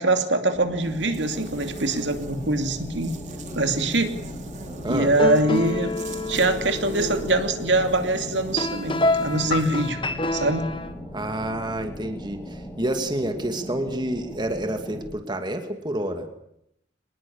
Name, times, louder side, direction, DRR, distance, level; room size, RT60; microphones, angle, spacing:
voice 1, 0.0-3.2 3.5-4.1 4.9-5.9 6.3-10.0 10.3-10.6, right 2 dB, 70° right, 7 dB, 2.6 m, -23 dB
sound 1, 0.5-15.0, equal, 10° left, 5.2 m, -38 dB
Buzz, 0.8-9.9, right 3 dB, 40° right, 3.1 m, -43 dB
voice 2, 4.8-5.2 11.1-16.3, right 1 dB, 25° right, 6 dB, 2.3 m, -29 dB
sound 2, 4.9-10.9, left 2 dB, 25° left, 1.7 m, -28 dB
25.5 x 20.5 x 7.2 m, 0.76 s
head